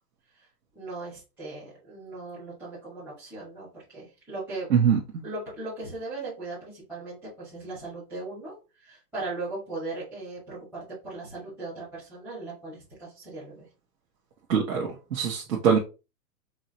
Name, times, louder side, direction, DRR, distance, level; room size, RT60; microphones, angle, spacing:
voice 1, 0.7-4.7 5.2-8.5 8.8-13.6, right 2 dB, 5° right, -10 dB, 1.2 m, -38 dB
voice 2, 14.5-15.8, right 7 dB, 85° right, -2 dB, 1.3 m, -23 dB
4.8 x 2.8 x 2.8 m, 0.31 s
hypercardioid pair, 175°, 48 cm